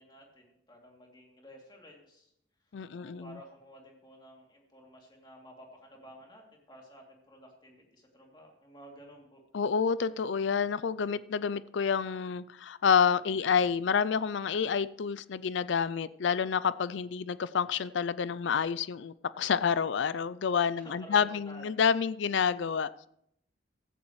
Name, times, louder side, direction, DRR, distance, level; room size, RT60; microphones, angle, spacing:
voice 1, 0.0-2.3 2.6-9.4 20.8-21.8, equal, 20° left, -1 dB, 2.8 m, -53 dB
voice 2, 2.7-3.4 9.5-22.9, left 6 dB, 70° left, 17 dB, 0.4 m, -28 dB
16.0 x 14.5 x 3.2 m, 0.75 s
head